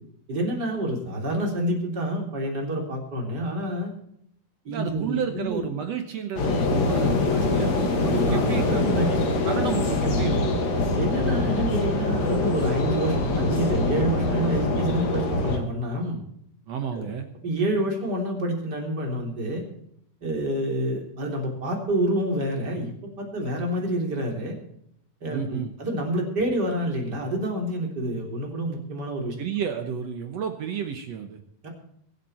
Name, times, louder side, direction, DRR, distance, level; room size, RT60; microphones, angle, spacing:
voice 1, 0.3-3.9 4.7-5.7 8.0-9.2 10.9-16.2 16.9-17.1 17.4-19.6 20.2-24.6 25.2-29.4 31.6-31.7, right 1 dB, 30° right, 1 dB, 3.7 m, -28 dB
voice 2, 4.7-10.6 16.7-17.3 25.3-25.7 29.4-31.4, right 7 dB, 65° right, 6 dB, 1.9 m, -31 dB
sound 1, 6.4-15.6, left 2 dB, 55° left, 2.8 m, -24 dB
23.0 x 8.3 x 4.4 m, 0.71 s
omnidirectional pair, 4.0 m